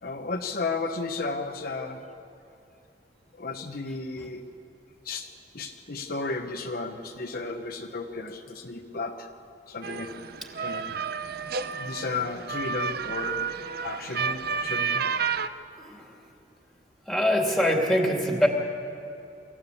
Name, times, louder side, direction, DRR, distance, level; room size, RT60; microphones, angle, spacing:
voice 1, 0.0-2.0 3.4-4.4 5.0-5.3 5.5-9.3 9.7-10.1 10.6-10.9 11.8-13.4 13.8-15.1, left 3 dB, 55° left, 4 dB, 1.1 m, -33 dB
sound 1, 9.8-15.5, right 6 dB, 60° right, 0.7 m, -31 dB
voice 2, 17.1-18.5, equal, ahead, 0 dB, 2.7 m, -23 dB
25.0 x 15.0 x 8.5 m, 2.7 s
head